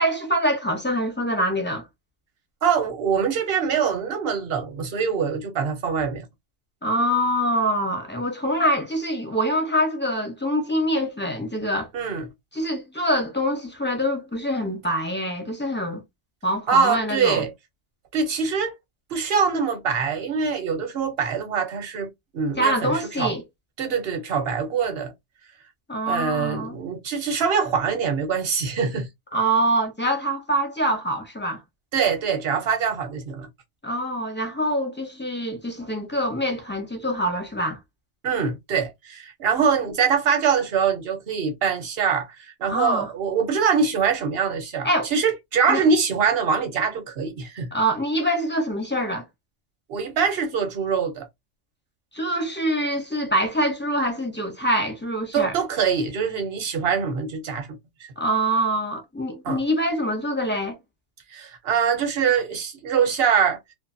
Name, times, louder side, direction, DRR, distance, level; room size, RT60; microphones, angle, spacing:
voice 1, 0.0-1.8 6.8-11.9 12.5-16.0 16.4-17.4 22.6-23.4 25.9-26.8 29.3-31.6 33.8-37.8 42.7-43.1 44.8-45.1 45.7-45.8 47.7-49.2 52.1-55.5 58.2-60.8, equal, 15° left, 0.4 m, -25 dB
voice 2, 2.6-6.3 11.9-12.3 16.7-17.5 18.1-18.7 19.1-23.3 23.8-25.1 26.1-29.1 31.9-33.5 38.2-47.7 49.9-51.3 55.3-57.7 58.0-58.1 59.4-59.6 61.3-63.6, right 6 dB, 55° right, 1.0 m, -24 dB
2.5 x 2.4 x 2.6 m
omnidirectional pair, 1.3 m